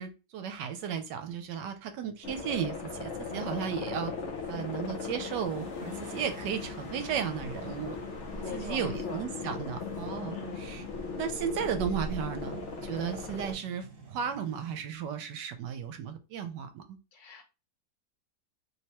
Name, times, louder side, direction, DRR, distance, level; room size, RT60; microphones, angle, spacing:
voice 1, 0.0-4.1 4.5-8.0 8.5-10.8 11.2-17.0, right 8 dB, 75° right, 8 dB, 1.2 m, -35 dB
sound 1, 2.2-13.6, left 4 dB, 60° left, 0.8 m, -38 dB
sound 2, 6.0-14.8, right 4 dB, 50° right, 1.3 m, -51 dB
voice 2, 8.4-9.2 10.3-10.8 17.1-17.4, left 4 dB, 75° left, 3 dB, 1.7 m, -42 dB
3.4 x 3.0 x 2.9 m, 0.30 s
omnidirectional pair, 1.9 m